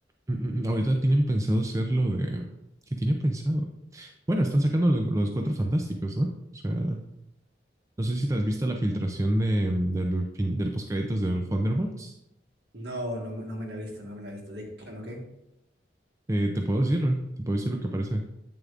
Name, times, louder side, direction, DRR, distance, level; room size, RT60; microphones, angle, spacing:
voice 1, 0.3-2.5 2.9-3.7 3.9-7.0 8.0-12.2 16.3-18.2, right 1 dB, 15° right, 3 dB, 0.4 m, -26 dB
voice 2, 12.7-15.2, equal, 70° right, 0 dB, 1.5 m, -36 dB
8.5 x 6.5 x 2.5 m, 0.87 s
head